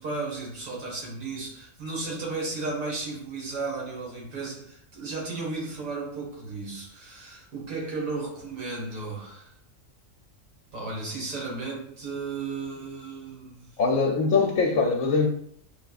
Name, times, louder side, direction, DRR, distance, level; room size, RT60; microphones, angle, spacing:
voice 1, 0.0-9.5 10.7-13.7, right 3 dB, 75° right, -3 dB, 1.9 m, -34 dB
voice 2, 13.8-15.3, left 4 dB, 80° left, 0 dB, 1.0 m, -22 dB
5.9 x 3.5 x 2.4 m, 0.66 s
omnidirectional pair, 1.4 m